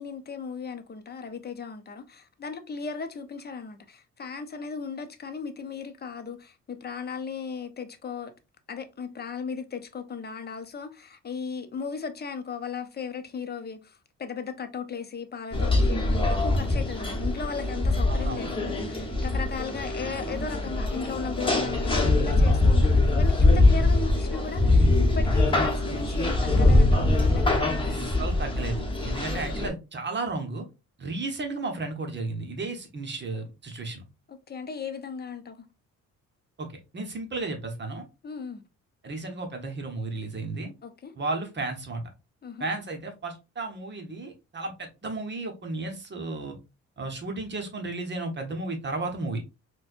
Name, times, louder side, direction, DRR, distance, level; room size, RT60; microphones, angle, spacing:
voice 1, 0.0-8.3 8.7-28.2 34.3-35.7 38.2-38.6 40.8-41.1 42.4-42.7, left 5 dB, 35° left, 0.6 m, -36 dB
sound 1, 15.5-29.7, left 2 dB, 15° left, 1.0 m, -23 dB
voice 2, 18.1-18.4 27.8-30.6 31.0-34.0 36.6-36.7 36.9-38.0 39.0-40.7 41.1-42.0 42.6-46.6 47.0-49.4, right 3 dB, 35° right, 0.9 m, -33 dB
4.2 x 2.2 x 2.5 m
cardioid pair, 90°, 30 cm